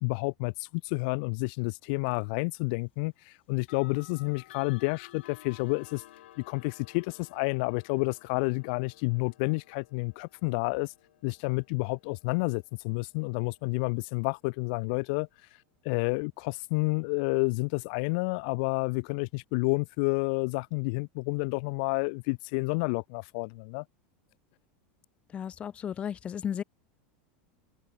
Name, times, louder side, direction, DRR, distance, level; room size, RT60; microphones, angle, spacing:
voice 1, 0.0-6.0 6.5-10.9 11.2-15.3 15.8-23.8, left 32 dB, 55° left, 0.7 m, -30 dB
sound 1, 2.0-2.3 3.6-14.4, left 14 dB, 90° left, 4.5 m, -55 dB
voice 2, 25.3-26.6, left 8 dB, 20° left, 0.5 m, -34 dB
supercardioid pair, 160°, 6 cm